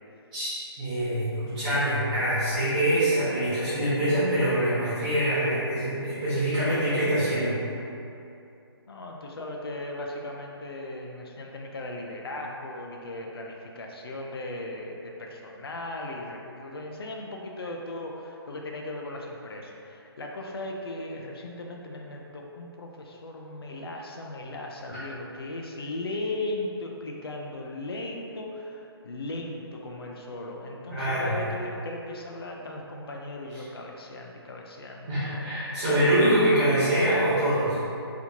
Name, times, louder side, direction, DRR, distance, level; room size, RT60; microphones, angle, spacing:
voice 1, 0.3-7.6 30.9-31.5 35.1-37.8, right 1 dB, 20° right, -15 dB, 1.2 m, -24 dB
voice 2, 8.9-36.2, left 2 dB, 65° left, 0 dB, 0.5 m, -37 dB
4.1 x 2.8 x 2.9 m, 2.7 s
hypercardioid pair, 175°, 14 cm